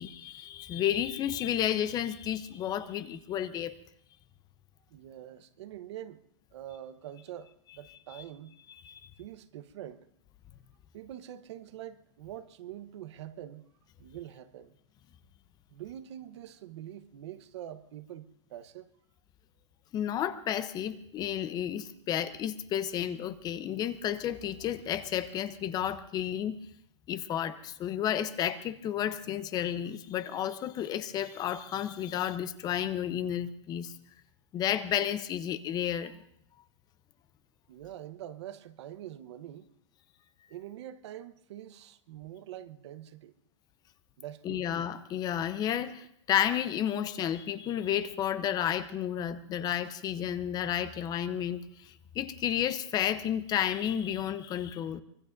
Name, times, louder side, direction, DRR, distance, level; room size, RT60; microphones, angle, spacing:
voice 1, 0.0-3.7 8.1-8.2 8.8-9.1 19.9-26.6 27.1-33.9 34.5-36.1 44.4-55.0, left 10 dB, 25° left, 0.8 m, -32 dB
voice 2, 4.9-6.2 6.5-8.6 9.2-10.1 10.9-13.7 14.0-14.8 15.7-18.9 37.7-39.7 40.5-43.3 44.2-44.7, right 11 dB, 70° right, 1.1 m, -45 dB
24.5 x 21.5 x 2.6 m
hypercardioid pair, 140°, 15 cm